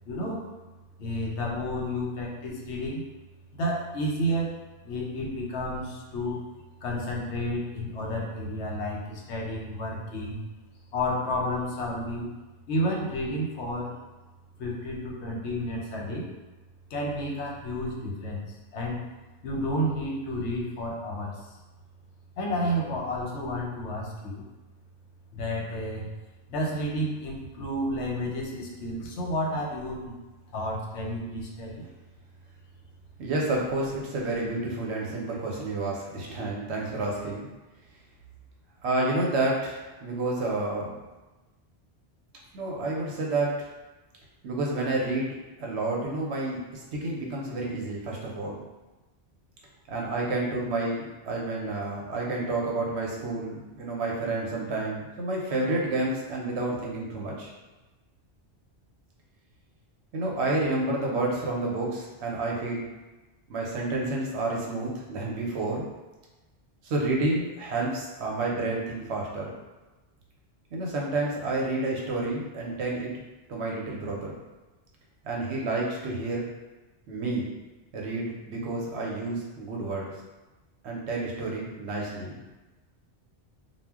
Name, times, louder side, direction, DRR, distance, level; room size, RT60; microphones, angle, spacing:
voice 1, 0.1-0.5 1.0-3.0 3.5-4.6 4.8-6.4 6.8-10.4 10.9-12.3 12.7-14.0 14.6-16.3 16.9-18.4 18.7-19.0 19.4-21.5 22.4-24.5 25.3-26.1 26.5-30.2 30.5-31.9, equal, 90° left, -1 dB, 0.9 m, -31 dB
voice 2, 33.2-37.5 38.8-41.0 42.5-43.7 44.4-48.6 49.9-57.5 60.1-62.9 63.5-65.9 66.8-69.5 70.7-73.2 73.5-74.3 75.2-76.4 77.1-77.5 77.9-80.1 80.8-82.4, right 2 dB, 80° right, -2 dB, 0.9 m, -30 dB
2.2 x 2.1 x 3.4 m, 1.1 s
omnidirectional pair, 1.1 m